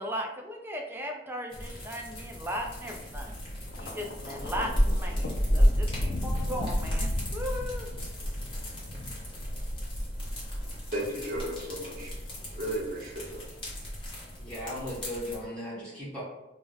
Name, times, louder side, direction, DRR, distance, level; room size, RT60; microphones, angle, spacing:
voice 1, 0.0-3.4 3.8-7.9, equal, 10° right, 2 dB, 0.4 m, -37 dB
sound 1, 1.5-15.4, equal, 30° left, 0.9 m, -32 dB
Thunder, 3.7-10.0 11.0-11.3, left 2 dB, 60° left, 0.3 m, -39 dB
voice 2, 10.9-12.1 12.5-13.4, right 1 dB, 50° right, -1 dB, 0.6 m, -34 dB
voice 3, 14.4-16.2, left 1 dB, 5° left, -9 dB, 0.9 m, -37 dB
2.5 x 2.0 x 3.9 m, 0.91 s
head